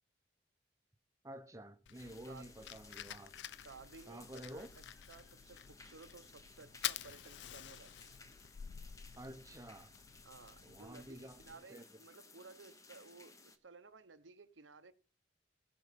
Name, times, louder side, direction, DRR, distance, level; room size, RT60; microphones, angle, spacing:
voice 1, 1.2-3.3 4.1-4.7 9.2-9.9 10.6-11.4 11.7-11.8, right 1 dB, 15° right, 0.7 m, -50 dB
Fire, 1.9-11.5, left 11 dB, 70° left, 0.4 m, -49 dB
sound 1, 1.9-13.6, left 3 dB, 15° left, 0.9 m, -60 dB
voice 2, 3.6-7.9 10.2-14.9, right 4 dB, 85° right, 0.9 m, -57 dB
16.5 x 5.6 x 5.2 m
head